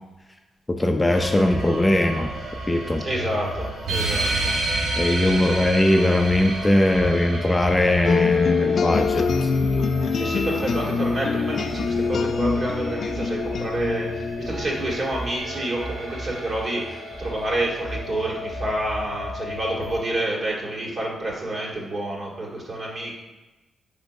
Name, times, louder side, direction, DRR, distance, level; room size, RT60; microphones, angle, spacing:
voice 1, 0.7-2.3 2.7-3.0 5.0-9.5, left 1 dB, 20° left, 4 dB, 0.6 m, -20 dB
sound 1, 1.1-20.0, equal, 90° right, 1.9 m, -34 dB
voice 2, 3.0-4.6 5.2-5.6 10.1-23.2, right 1 dB, 50° right, -3 dB, 2.2 m, -29 dB
sound 2, 3.9-8.9, right 2 dB, 70° right, 0.8 m, -28 dB
sound 3, 8.0-15.6, left 5 dB, 60° left, 0.4 m, -25 dB
5.0 x 4.1 x 5.3 m, 1.1 s
cardioid pair, 70°, 0 cm